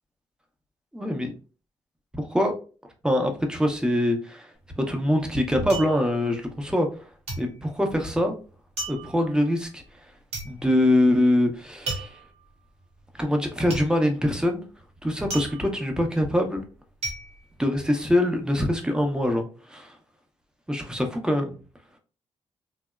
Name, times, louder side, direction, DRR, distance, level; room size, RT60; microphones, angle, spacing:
voice 1, 0.9-1.3 2.2-2.5 3.0-4.5 4.8-6.9 7.4-8.4 8.9-9.8 10.4-12.2 13.2-14.7 15.0-16.6 17.6-20.0 20.7-21.6, left 1 dB, 5° right, 4 dB, 0.7 m, -24 dB
sound 1, 4.6-7.0 7.3-18.4 18.7-19.3, right 2 dB, 75° right, 0.9 m, -37 dB
2.8 x 2.0 x 2.3 m, 0.36 s
supercardioid pair, 50°, 11 cm